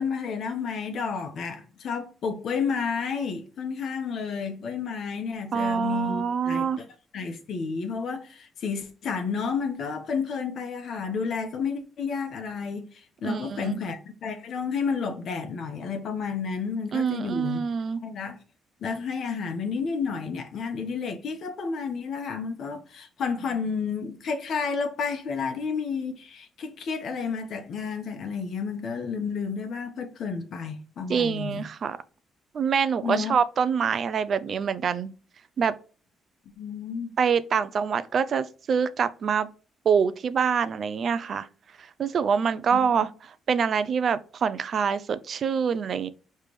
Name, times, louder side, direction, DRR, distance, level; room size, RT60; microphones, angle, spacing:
voice 1, 0.0-6.9 7.1-17.6 18.0-18.4 18.8-31.6 33.0-33.3 36.6-37.1, left 5 dB, 65° left, 1.0 m, -31 dB
voice 2, 5.5-6.8 13.2-13.8 16.9-18.0 31.1-32.0 32.5-35.1 35.6-35.7 37.2-39.5 39.9-41.5 42.0-46.1, right 6 dB, 55° right, 0.4 m, -25 dB
5.1 x 3.3 x 3.2 m
cardioid pair, 90°, 0 cm